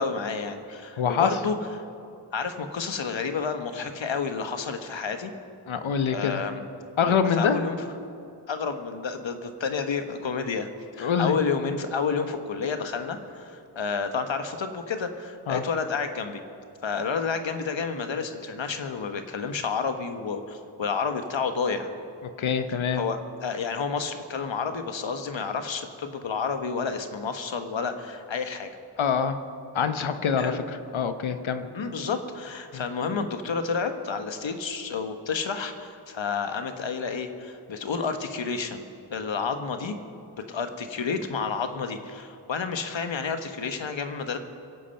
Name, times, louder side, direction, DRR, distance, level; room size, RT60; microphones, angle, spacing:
voice 1, 0.0-1.6 2.3-5.3 6.1-6.6 7.3-7.8 8.5-16.4 16.8-21.9 23.0-28.7 30.4-30.6 31.7-38.8 39.1-39.9 40.5-44.4, left 5 dB, 70° left, 7 dB, 1.3 m, -30 dB
voice 2, 1.0-1.4 5.7-6.4 7.0-7.6 11.0-11.4 15.5-15.6 22.4-23.0 29.0-29.4 29.7-30.6 30.9-31.7 32.7-32.9, left 6 dB, 85° left, 10 dB, 1.0 m, -25 dB
23.5 x 8.5 x 5.8 m, 2.6 s
wide cardioid pair, 70°, 46 cm